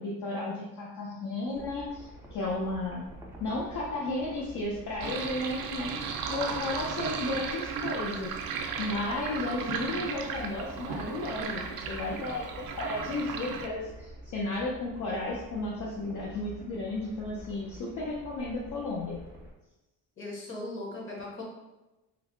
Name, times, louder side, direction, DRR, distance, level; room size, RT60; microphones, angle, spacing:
voice 1, 0.0-3.0 3.4-19.2, left 2 dB, 55° left, -5 dB, 0.7 m, -34 dB
sound 1, 1.5-19.5, right 1 dB, 5° right, 0.4 m, -48 dB
Sink (filling or washing), 5.0-13.7, right 6 dB, 65° right, 0.5 m, -35 dB
voice 2, 20.2-21.4, left 2 dB, 35° left, -3 dB, 1.0 m, -38 dB
3.1 x 2.1 x 3.7 m, 1.0 s
cardioid pair, 135°, 36 cm